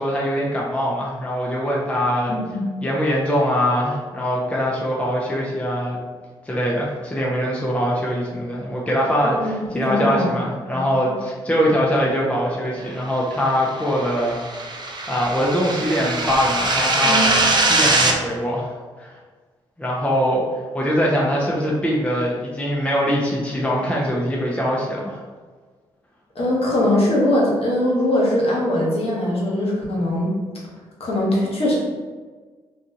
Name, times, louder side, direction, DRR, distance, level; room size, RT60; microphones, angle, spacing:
voice 1, 0.0-2.3 2.8-6.0 6.5-14.7 15.1-18.7 19.0-19.2 19.8-20.4 20.7-25.2, equal, 10° left, -4 dB, 0.7 m, -22 dB
voice 2, 2.3-2.7 9.2-10.3 17.0-17.3 26.3-30.3 31.0-31.8, left 1 dB, 50° left, -4 dB, 1.1 m, -21 dB
sound 1, 13.7-18.1, right 2 dB, 35° right, 0.5 m, -21 dB
2.6 x 2.4 x 2.7 m, 1.4 s
hypercardioid pair, 40°, 13 cm